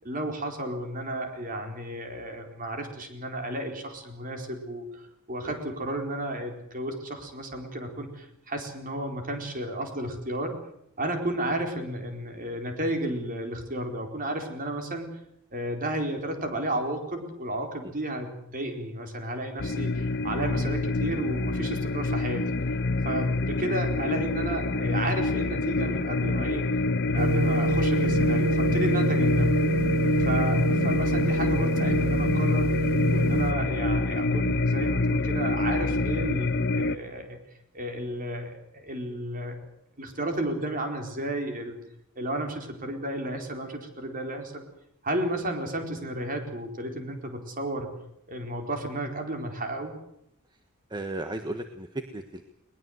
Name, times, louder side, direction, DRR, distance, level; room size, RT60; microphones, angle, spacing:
voice 1, 0.0-5.0 5.3-10.6 11.0-15.1 15.5-22.4 23.0-26.7 27.0-29.6 30.2-32.7 33.1-37.4 37.7-39.6 40.0-41.8 42.2-44.6 45.0-47.9 48.3-49.9, right 1 dB, 40° right, 4 dB, 4.5 m, -32 dB
sound 1, 19.6-37.0, left 2 dB, 55° left, 0.9 m, -26 dB
sound 2, 27.2-33.5, right 1 dB, 85° right, 1.8 m, -26 dB
voice 2, 50.9-52.4, right 2 dB, 20° right, 7 dB, 1.4 m, -35 dB
21.0 x 20.0 x 8.0 m, 0.75 s
head